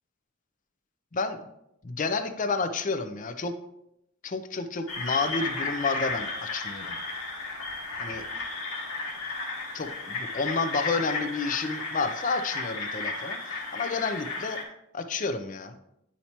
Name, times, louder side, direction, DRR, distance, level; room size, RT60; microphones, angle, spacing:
voice 1, 1.8-3.5 4.2-7.0 8.0-8.2 9.7-14.6 14.9-15.8, left 4 dB, 40° left, 9 dB, 0.5 m, -30 dB
sound 1, 4.9-14.6, left 3 dB, 90° left, 1.6 m, -34 dB
9.7 x 4.3 x 2.9 m, 0.80 s
head